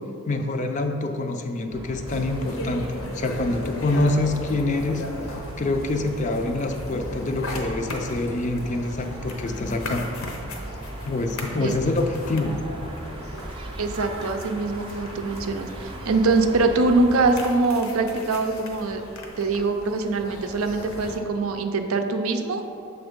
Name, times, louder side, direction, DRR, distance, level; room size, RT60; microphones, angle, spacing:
voice 1, 0.2-5.0 5.6-10.1 11.0-12.6, left 2 dB, 35° left, 5 dB, 0.4 m, -26 dB
sound 1, 1.7-17.4, right 1 dB, 25° right, 0.5 m, -38 dB
sound 2, 2.1-21.2, left 1 dB, 75° left, 0.8 m, -38 dB
voice 2, 13.8-19.0 19.4-22.6, right 3 dB, 80° right, 6 dB, 0.5 m, -23 dB
7.0 x 3.4 x 5.1 m, 2.8 s
head